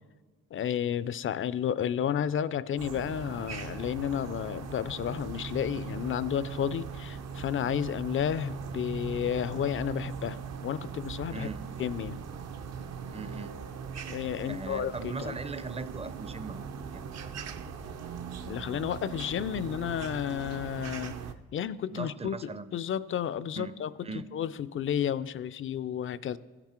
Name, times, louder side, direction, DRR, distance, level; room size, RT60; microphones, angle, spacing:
voice 1, 0.5-11.5 11.8-12.2 14.1-15.4 18.5-21.2 21.5-23.9 24.3-26.4, left 9 dB, 45° left, 17 dB, 0.4 m, -32 dB
sound 1, 2.8-21.3, right 6 dB, 60° right, 0.7 m, -40 dB
voice 2, 11.3-11.6 13.1-13.5 14.5-17.0 21.9-22.8 23.6-23.8 24.0-24.3, right 3 dB, 20° right, 13 dB, 0.5 m, -39 dB
16.0 x 6.0 x 4.3 m, 1.3 s
cardioid pair, 90°, 30 cm